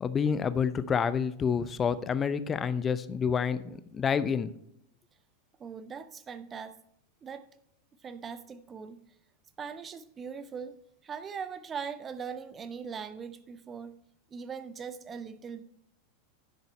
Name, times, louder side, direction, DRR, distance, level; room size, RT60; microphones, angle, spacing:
voice 1, 0.0-4.5, left 6 dB, 20° left, 0.6 m, -28 dB
voice 2, 5.6-6.8 7.2-7.5 8.0-9.0 9.6-10.7 11.0-13.9 14.3-15.6, right 6 dB, 20° right, 0.7 m, -40 dB
10.5 x 6.7 x 4.3 m
figure-of-eight pair, 90°, 0 cm